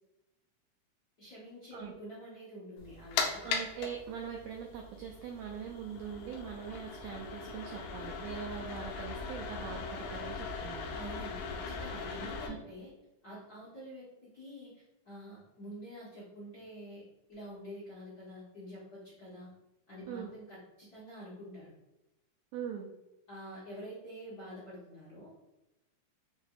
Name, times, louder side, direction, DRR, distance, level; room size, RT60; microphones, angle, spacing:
voice 1, 1.2-3.4 10.9-12.9 13.2-14.7 15.0-17.0 17.3-19.5 19.9-21.7 23.3-25.3, equal, 60° left, -8 dB, 1.0 m, -47 dB
sound 1, 2.8-12.5, left 5 dB, 85° left, 2.3 m, -39 dB
voice 2, 3.4-10.8 12.5-12.6 20.1-20.3 22.5-22.9, right 7 dB, 90° right, 0 dB, 1.5 m, -42 dB
6.8 x 2.7 x 2.4 m, 0.95 s
omnidirectional pair, 3.7 m